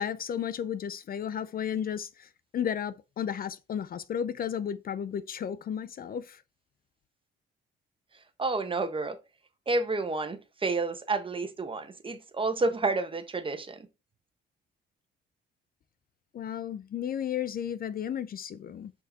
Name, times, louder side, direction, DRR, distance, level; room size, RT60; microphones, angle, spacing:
voice 1, 0.0-6.4 16.3-18.9, left 9 dB, 50° left, 0.5 m, -33 dB
voice 2, 8.4-9.2 9.7-13.9, right 3 dB, 25° right, 1.1 m, -30 dB
5.9 x 5.6 x 3.6 m
cardioid pair, 90°, 20 cm